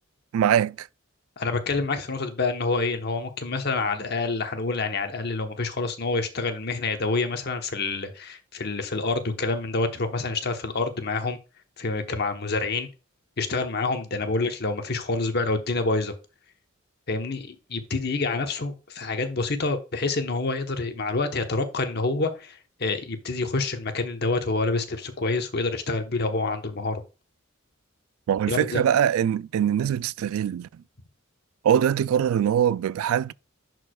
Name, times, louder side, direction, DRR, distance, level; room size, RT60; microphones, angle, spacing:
voice 1, 0.3-0.9 28.3-30.8 31.6-33.3, right 9 dB, 90° right, 0.3 m, -23 dB
voice 2, 1.4-11.4 11.8-12.9 13.4-16.1 17.1-27.0 28.5-28.8, left 3 dB, 50° left, 1.0 m, -27 dB
10.5 x 4.7 x 2.3 m
head